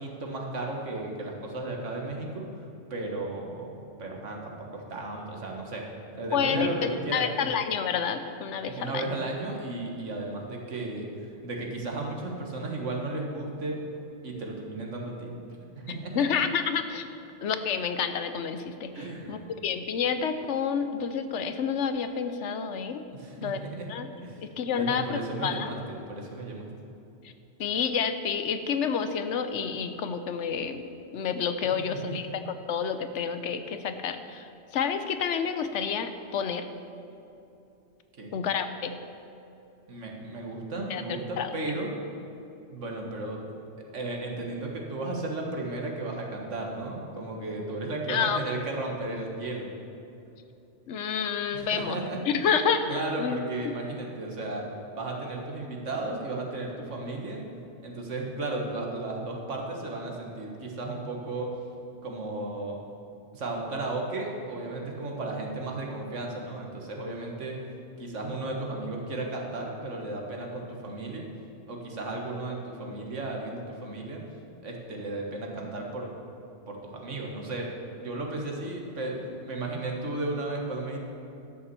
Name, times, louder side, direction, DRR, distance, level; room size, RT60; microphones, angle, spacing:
voice 1, 0.0-3.7 4.0-5.9 6.1-7.5 8.6-13.8 14.2-15.3 15.8-16.3 18.9-19.5 23.1-23.9 24.2-26.7 31.7-32.2 38.2-38.3 39.9-41.9 42.7-43.4 43.8-49.7 51.5-52.5 52.9-57.4 57.8-61.6 62.0-62.8 63.3-67.6 68.0-71.3 71.7-74.2 74.6-76.1 76.7-81.0, right 2 dB, 90° right, 0 dB, 1.9 m, -34 dB
voice 2, 6.3-9.0 15.9-17.1 17.4-18.9 19.3-23.0 23.4-23.6 23.9-24.1 24.6-25.7 27.6-30.8 31.1-32.4 32.7-36.7 38.3-39.0 40.9-41.0 41.4-41.5 48.1-48.4 50.9-52.0 52.3-52.9 53.2-53.4, left 7 dB, 75° left, 9 dB, 1.0 m, -29 dB
12.0 x 7.0 x 6.9 m, 2.8 s
omnidirectional pair, 1.2 m